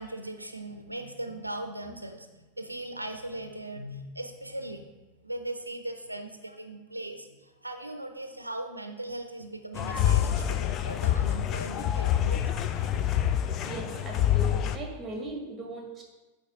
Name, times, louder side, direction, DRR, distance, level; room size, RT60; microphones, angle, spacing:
voice 1, 0.0-4.9 5.2-12.4 13.1-13.6, right 1 dB, 85° right, 6 dB, 0.5 m, -39 dB
sound 1, 9.7-14.8, left 10 dB, 30° left, 0.4 m, -26 dB
sound 2, 12.5-13.4 13.7-13.8, right 2 dB, 65° left, 1.3 m, -44 dB
voice 2, 13.6-16.0, right 2 dB, 15° right, 1 dB, 1.5 m, -38 dB
8.1 x 3.0 x 4.9 m, 1.2 s
figure-of-eight pair, 90°, 0 cm